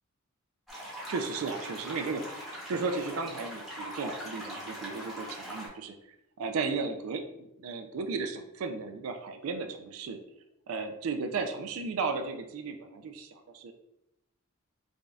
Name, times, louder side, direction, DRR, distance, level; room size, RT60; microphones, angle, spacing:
sound 1, 0.7-5.7, equal, ahead, 1.0 m, -41 dB
voice 1, 1.1-5.9 6.4-10.2 10.7-13.7, right 4 dB, 80° right, 7 dB, 0.4 m, -35 dB
4.8 x 2.6 x 2.3 m, 0.84 s
head